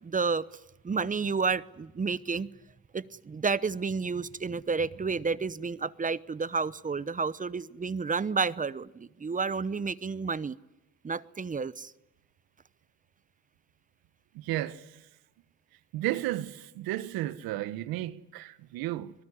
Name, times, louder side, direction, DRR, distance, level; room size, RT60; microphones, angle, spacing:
voice 1, 0.0-0.4 0.8-2.5 2.9-10.6 11.0-11.9, right 4 dB, 20° right, 0.9 m, -30 dB
voice 2, 14.4-14.8 15.9-19.1, right 15 dB, 75° right, 1.4 m, -33 dB
25.0 x 19.5 x 10.0 m
supercardioid pair, 80°, 35 cm